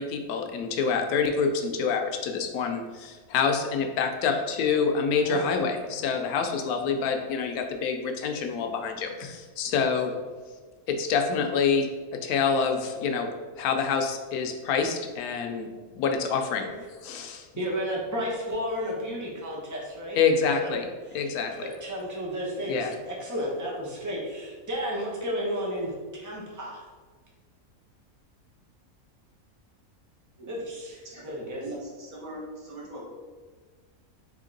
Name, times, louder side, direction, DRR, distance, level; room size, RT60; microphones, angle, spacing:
voice 1, 0.0-10.1 10.9-11.9 12.1-13.3 13.6-16.7 17.0-17.5 20.2-20.9 21.1-21.6 22.7-22.9, left 5 dB, 90° left, 4 dB, 1.1 m, -27 dB
voice 2, 5.1-5.5 17.6-20.2 20.6-20.8 21.1-21.3 21.6-26.8 30.5-31.6, equal, 15° right, -3 dB, 0.7 m, -33 dB
voice 3, 31.5-33.0, right 1 dB, 75° right, -6 dB, 1.9 m, -40 dB
3.7 x 3.5 x 3.8 m, 1.4 s
omnidirectional pair, 1.5 m